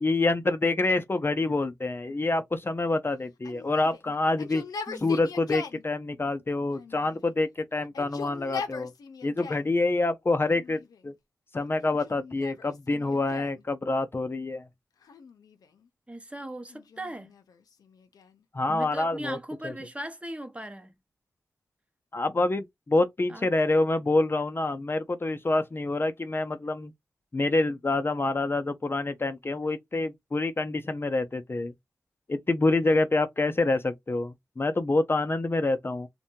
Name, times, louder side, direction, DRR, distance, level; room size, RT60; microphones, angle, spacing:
voice 1, 0.0-4.6 5.0-8.9 9.2-11.1 11.5-14.7 18.5-19.4 19.6-19.7 22.1-26.9 27.3-31.7 32.3-36.1, left 2 dB, 35° left, 0.4 m, -27 dB
Yell, 3.4-5.8 6.7-7.5 7.8-9.7 10.5-11.1 11.8-13.6 15.0-15.9 16.7-18.4, left 6 dB, 90° left, 0.5 m, -41 dB
voice 2, 16.1-17.3 18.7-20.9 23.3-23.5, right 1 dB, 20° right, 0.7 m, -38 dB
2.6 x 2.2 x 2.8 m
cardioid pair, 45°, 6 cm